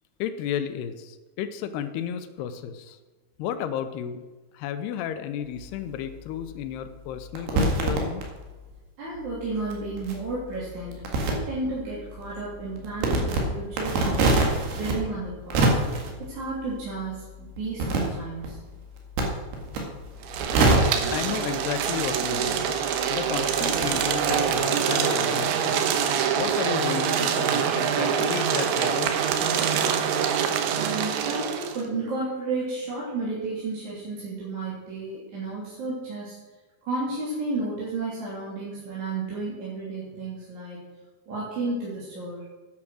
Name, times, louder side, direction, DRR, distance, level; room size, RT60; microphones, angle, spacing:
voice 1, 0.2-3.0 3.4-4.2 4.5-8.2 21.1-22.7 23.1-25.9 26.4-29.4, left 9 dB, 80° left, 10 dB, 2.6 m, -33 dB
sound 1, 5.4-8.8 9.1-24.6, right 2 dB, 65° right, 3.6 m, -29 dB
voice 2, 9.0-14.4 14.7-15.8 16.2-18.6 30.8-36.4 36.8-40.8 41.3-42.4, right 3 dB, 45° right, -7 dB, 3.8 m, -32 dB
sound 2, 20.2-31.8, right 7 dB, 85° right, 3.3 m, -25 dB
11.0 x 8.9 x 6.3 m, 1.2 s
omnidirectional pair, 5.1 m